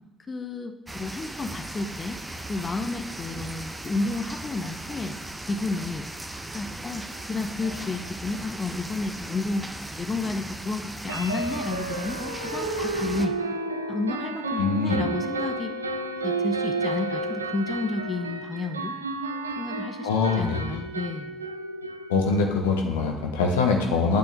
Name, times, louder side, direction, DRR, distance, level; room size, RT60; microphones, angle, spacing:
voice 1, 0.3-2.2 2.5-5.2 5.5-6.1 6.5-9.7 10.0-13.4 13.9-15.8 16.2-18.9 19.6-20.1 20.4-21.4, left 3 dB, 30° left, 6 dB, 1.1 m, -31 dB
sound 1, 0.9-13.3, right 1 dB, 15° right, 1.2 m, -38 dB
sound 2, 7.1-7.2 7.6-7.8 8.1-8.2 11.1-22.5, right 2 dB, 85° right, 0.7 m, -31 dB
voice 2, 14.5-15.1 20.0-20.8 22.1-24.2, left 4 dB, 75° left, 2 dB, 1.5 m, -24 dB
9.7 x 6.2 x 8.6 m, 0.99 s
figure-of-eight pair, 50°, 0 cm